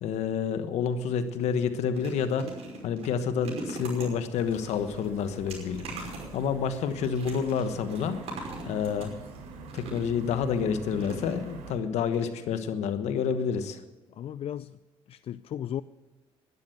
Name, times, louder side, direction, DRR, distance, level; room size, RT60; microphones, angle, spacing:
voice 1, 0.0-2.5 2.8-8.2 8.7-9.1 9.6-13.8, left 7 dB, 80° left, 10 dB, 1.3 m, -29 dB
sound 1, 0.9-1.1 1.5-10.3 11.0-11.8 12.1-12.3 12.5-12.6, right 2 dB, 65° right, 5.6 m, -42 dB
sound 2, 4.4-11.8, right 3 dB, 80° right, 3.7 m, -44 dB
voice 2, 14.1-14.8 15.1-15.8, left 10 dB, 60° left, 15 dB, 0.4 m, -35 dB
12.0 x 11.0 x 7.9 m, 1.1 s
supercardioid pair, 70°, 11 cm